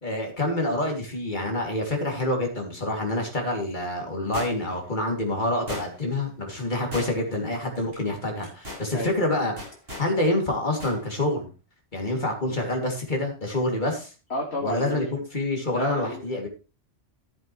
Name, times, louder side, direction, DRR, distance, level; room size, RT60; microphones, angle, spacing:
voice 1, 0.0-9.5 10.0-11.5 11.9-14.1 14.6-16.5, left 1 dB, 45° left, 1 dB, 3.1 m, -27 dB
sound 1, 4.3-4.8 5.7-6.2 6.9-7.4 7.8-8.0 8.4-8.9 9.6-10.1 10.8-11.0 11.3-11.4, left 1 dB, 60° right, 7.3 m, -37 dB
voice 2, 14.3-15.0 15.7-16.5, left 1 dB, 75° left, -2 dB, 2.5 m, -31 dB
14.5 x 7.7 x 3.3 m, 0.33 s
omnidirectional pair, 1.1 m